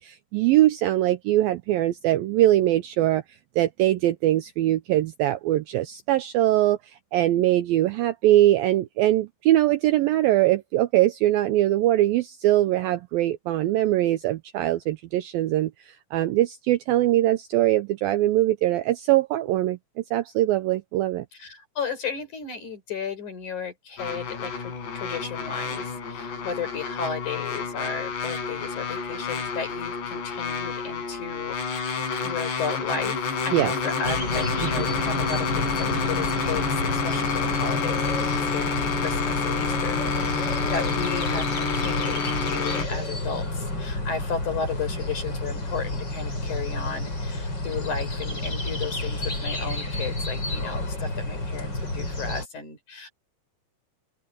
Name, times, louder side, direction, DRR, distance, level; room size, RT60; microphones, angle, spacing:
voice 1, 0.0-3.2 3.6-21.3 33.5-33.7, right 14 dB, 85° right, 2.1 m, -22 dB
voice 2, 21.4-53.1, left 5 dB, 45° left, 6.2 m, -34 dB
sound 1, 24.0-42.9, left 5 dB, 80° left, 7.9 m, -29 dB
sound 2, 34.0-52.5, left 2 dB, 25° left, 6.7 m, -30 dB
open air
omnidirectional pair, 5.0 m